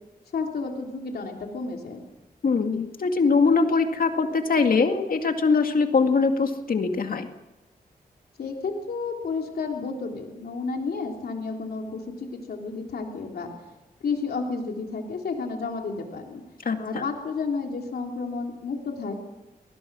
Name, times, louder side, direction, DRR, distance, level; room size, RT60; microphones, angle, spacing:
voice 1, 0.3-2.0 8.4-13.5 14.0-16.4 16.8-19.2, left 4 dB, 80° left, 2 dB, 3.4 m, -31 dB
voice 2, 2.4-7.3 16.6-17.0, left 4 dB, 65° left, 6 dB, 2.2 m, -22 dB
25.0 x 19.5 x 6.3 m, 1.0 s
cardioid pair, 65°, 16 cm